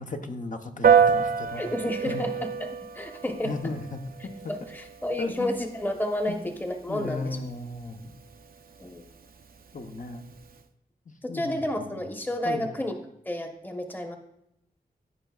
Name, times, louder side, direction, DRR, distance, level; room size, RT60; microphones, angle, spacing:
voice 1, 0.0-1.6 2.0-2.2 3.4-4.3 5.2-5.5 6.3-6.4 6.9-8.1 9.7-10.2 11.1-11.6 12.4-12.7, left 3 dB, 50° left, 5 dB, 0.9 m, -35 dB
Piano, 0.8-10.6, right 7 dB, 60° right, 0.6 m, -29 dB
voice 2, 1.6-3.5 4.5-7.4 8.8-9.0 11.2-13.0 13.2-14.2, left 1 dB, 10° left, 4 dB, 1.0 m, -31 dB
15.0 x 5.5 x 2.4 m, 0.81 s
cardioid pair, 55°, 17 cm